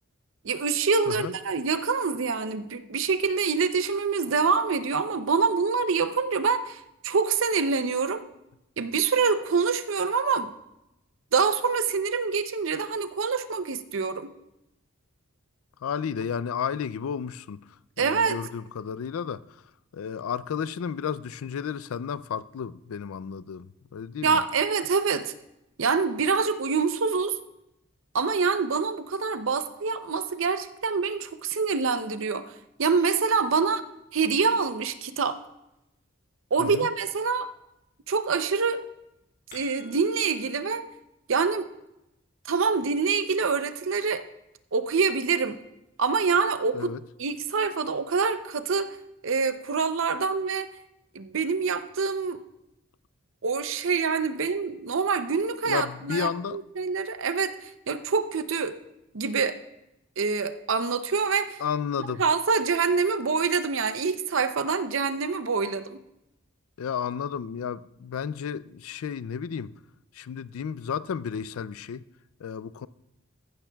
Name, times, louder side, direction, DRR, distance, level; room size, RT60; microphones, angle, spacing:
voice 1, 0.4-8.2 8.8-10.5 11.3-14.3 18.0-18.4 24.2-25.3 25.8-27.4 28.1-33.8 34.1-35.4 36.5-37.5 38.1-38.8 39.5-40.8 41.3-41.7 42.5-44.2 44.7-45.6 46.0-46.9 47.2-49.0 49.2-50.7 51.1-52.4 53.4-58.8 59.1-59.6 60.2-61.6 62.2-66.0, right 5 dB, 65° right, 0.6 m, -26 dB
voice 2, 1.1-1.4 15.8-17.6 18.0-19.4 19.9-24.4 36.6-36.9 46.7-47.0 55.6-56.6 61.6-62.2 66.8-69.7 70.1-72.0 72.4-72.9, left 7 dB, 80° left, 0.4 m, -32 dB
sound 1, 39.0-40.5, left 3 dB, 50° left, 3.9 m, -50 dB
15.0 x 12.0 x 2.3 m
head